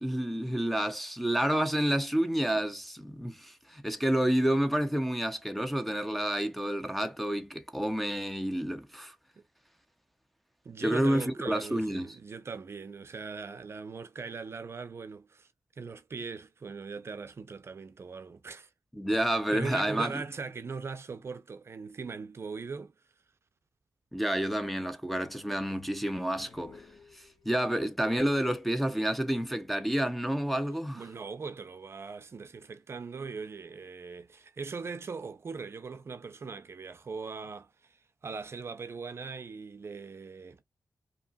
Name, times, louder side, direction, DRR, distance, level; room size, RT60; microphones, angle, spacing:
voice 1, 0.0-9.1 10.8-12.1 19.0-20.2 24.1-26.8 27.1-31.0, right 1 dB, ahead, 0.6 m, -29 dB
voice 2, 10.6-15.5 15.8-18.7 19.1-22.9 30.9-40.6, right 4 dB, 40° right, 0.5 m, -40 dB
sound 1, 26.3-27.8, left 4 dB, 45° left, 1.5 m, -55 dB
5.4 x 2.9 x 2.3 m
wide cardioid pair, 155°, 6 cm